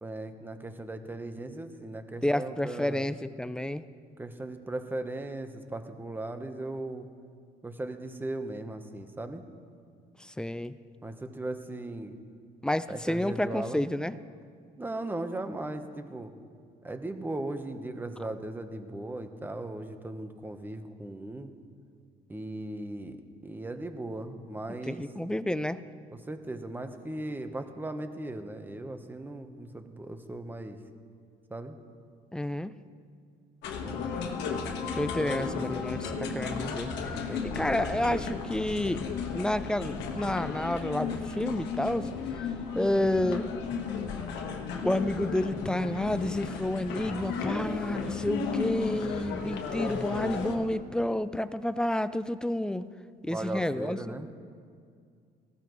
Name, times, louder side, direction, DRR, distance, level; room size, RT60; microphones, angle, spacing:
voice 1, 0.0-3.1 4.2-7.1 7.6-9.4 11.0-12.1 12.9-13.9 14.8-16.3 16.8-21.5 22.3-25.0 26.3-30.8 31.5-31.8 33.8-34.3 35.1-35.6 37.1-37.7 53.3-54.3, right 2 dB, 10° right, 7 dB, 1.0 m, -38 dB
voice 2, 2.2-3.8 10.2-10.7 12.6-14.2 24.7-25.8 32.3-32.8 34.9-39.0 39.3-42.1 42.7-43.5 44.8-52.9 53.2-54.2, left 1 dB, 5° left, 13 dB, 0.4 m, -30 dB
sound 1, 33.6-50.6, left 5 dB, 90° left, 1.4 m, -34 dB
19.0 x 15.5 x 3.1 m, 2.2 s
cardioid pair, 110°, 17 cm